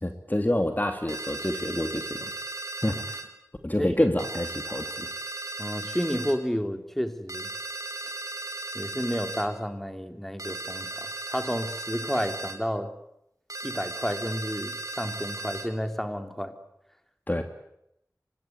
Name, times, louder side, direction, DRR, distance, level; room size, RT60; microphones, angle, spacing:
voice 1, 0.0-2.3 2.8-3.2 3.6-5.1 17.3-17.4, left 1 dB, 30° left, 6 dB, 2.7 m, -27 dB
sound 1, 1.1-3.3 4.2-6.4 7.3-9.5 10.4-12.6 13.5-15.7, right 2 dB, 65° right, 4.3 m, -36 dB
voice 2, 5.6-7.5 8.7-12.9 13.6-16.5, equal, 5° left, 8 dB, 3.4 m, -31 dB
25.5 x 21.0 x 9.7 m, 0.79 s
wide cardioid pair, 45°, 6 cm